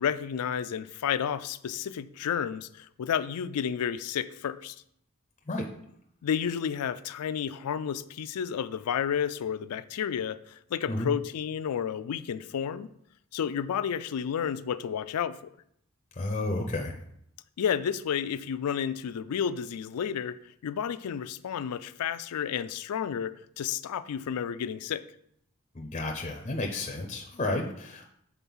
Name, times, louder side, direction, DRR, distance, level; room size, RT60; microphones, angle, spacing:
voice 1, 0.0-4.7 6.2-12.9 13.3-15.4 17.6-20.4 20.6-25.0, left 8 dB, 85° left, 14 dB, 0.4 m, -31 dB
voice 2, 16.2-16.9 25.7-28.1, left 2 dB, 30° left, 3 dB, 0.5 m, -31 dB
5.9 x 3.9 x 5.4 m, 0.72 s
head